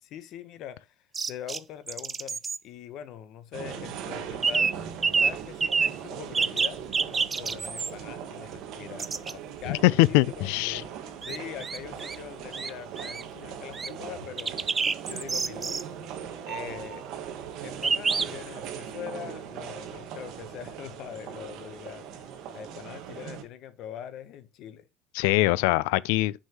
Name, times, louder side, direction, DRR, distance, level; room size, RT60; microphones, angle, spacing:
voice 1, 0.0-2.4 2.6-4.8 5.2-10.9 11.2-15.7 16.5-17.0 17.6-24.8, left 10 dB, 50° left, 0.9 m, -42 dB
sound 1, 1.1-1.6 1.9-2.6 4.4-4.8 5.0-5.3 5.6-6.0 6.3-7.9 9.0-9.3 11.2-12.2 12.5-12.7 13.0-13.2 13.7-13.9 14.4-15.8 17.8-18.3, right 5 dB, 20° right, 0.3 m, -27 dB
sound 2, 3.5-23.4, right 8 dB, 50° right, 1.3 m, -40 dB
voice 2, 9.7-10.8 25.1-26.3, left 19 dB, 80° left, 0.3 m, -22 dB
6.3 x 5.5 x 2.9 m
cardioid pair, 155°, 0 cm